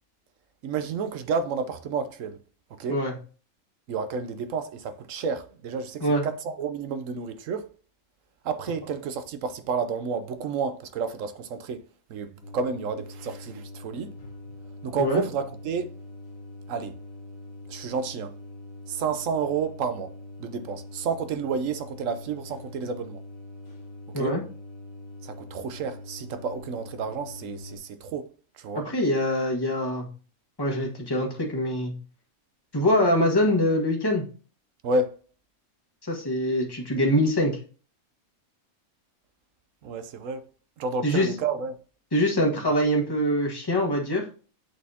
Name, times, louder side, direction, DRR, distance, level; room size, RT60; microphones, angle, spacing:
voice 1, 0.6-2.4 2.8-3.0 3.9-7.7 8.4-11.8 12.1-14.1 14.8-16.0 16.7-17.0 17.7-18.4 18.9-23.2 24.2-24.4 25.2-28.8 34.8-35.2 39.8-40.5 40.8-41.8, right 5 dB, 70° right, 1.0 m, -30 dB
sound 1, 12.4-27.8, left 2 dB, 45° left, 1.5 m, -43 dB
voice 2, 28.8-30.1 30.6-31.9 32.7-34.2 36.1-37.5 41.0-41.3 42.1-44.3, left 1 dB, 15° left, 1.4 m, -24 dB
8.2 x 4.1 x 2.8 m
omnidirectional pair, 1.5 m